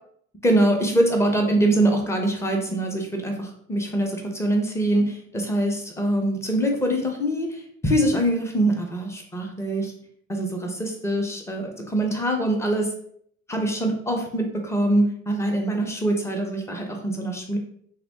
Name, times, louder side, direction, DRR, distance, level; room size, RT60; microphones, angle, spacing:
voice 1, 0.4-9.9 10.3-12.9 13.5-17.6, right 1 dB, 5° left, 2 dB, 0.5 m, -24 dB
3.0 x 2.0 x 2.8 m, 0.64 s
figure-of-eight pair, 60°, 38 cm